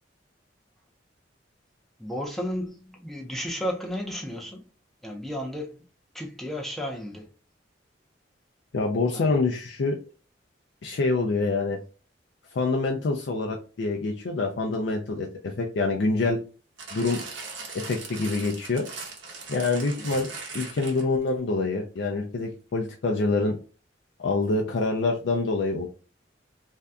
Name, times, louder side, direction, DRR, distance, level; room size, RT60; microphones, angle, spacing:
voice 1, 2.0-4.7 5.0-5.8 6.1-7.3 9.1-9.4 20.0-20.1, equal, ahead, 0.6 m, -33 dB
voice 2, 8.7-10.0 10.8-11.8 12.5-16.4 16.9-17.2 17.7-18.9 19.5-23.6 24.2-25.9, left 3 dB, 70° left, 0.4 m, -26 dB
sound 1, 16.8-21.2 22.0-22.1, right 4 dB, 80° right, 0.9 m, -39 dB
2.6 x 2.2 x 3.4 m
head